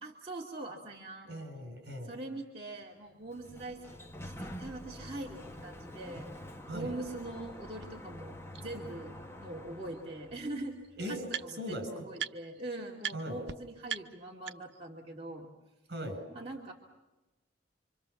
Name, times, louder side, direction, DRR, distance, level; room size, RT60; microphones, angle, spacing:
voice 1, 0.0-1.3 2.0-10.8 11.0-15.5 16.3-16.7, right 2 dB, 30° right, -3 dB, 2.5 m, -43 dB
voice 2, 1.2-2.1 6.7-6.9 11.0-11.3 11.6-12.1 13.1-13.4 15.9-16.2, equal, 55° right, 6 dB, 7.3 m, -39 dB
Sliding door, 3.1-10.5, left 1 dB, 15° left, 1.5 m, -47 dB
sound 1, 7.8-7.9 8.5-8.6 9.9-10.0 10.3-11.8 12.1-12.6 13.0-13.2 13.5-13.6 13.9-14.9, right 8 dB, 75° right, 1.1 m, -40 dB
27.0 x 26.0 x 7.2 m, 1.1 s
head